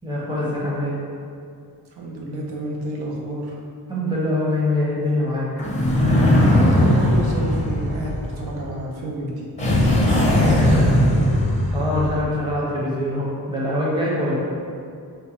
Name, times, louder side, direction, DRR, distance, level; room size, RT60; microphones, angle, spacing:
voice 1, 0.0-1.0 3.9-5.5 11.7-14.4, left 1 dB, 10° right, -6 dB, 0.7 m, -23 dB
voice 2, 1.9-3.6 6.4-10.8, right 2 dB, 75° right, -3 dB, 0.7 m, -30 dB
sound 1, 5.6-8.7 9.6-12.3, left 1 dB, 20° left, 0.5 m, -18 dB
5.1 x 2.2 x 2.9 m, 2.3 s
wide cardioid pair, 130°, 39 cm